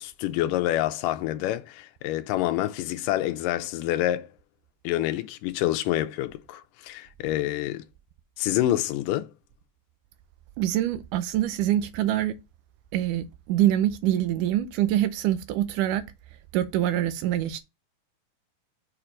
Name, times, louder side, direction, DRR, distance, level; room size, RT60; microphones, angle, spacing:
voice 1, 0.0-4.3 4.8-7.8 8.4-9.3, left 14 dB, 85° left, 2.3 m, -27 dB
voice 2, 10.6-12.4 12.9-16.0 16.5-17.6, right 12 dB, 80° right, 2.2 m, -25 dB
6.7 x 4.4 x 3.9 m
omnidirectional pair, 3.8 m